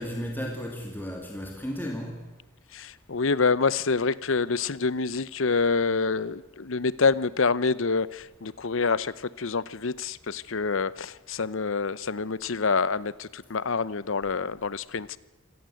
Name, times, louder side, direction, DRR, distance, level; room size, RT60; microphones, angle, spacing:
voice 1, 0.0-2.3, equal, 10° left, 2.7 m, -34 dB
voice 2, 2.7-15.2, left 4 dB, 70° left, 0.8 m, -27 dB
26.5 x 17.5 x 7.7 m
head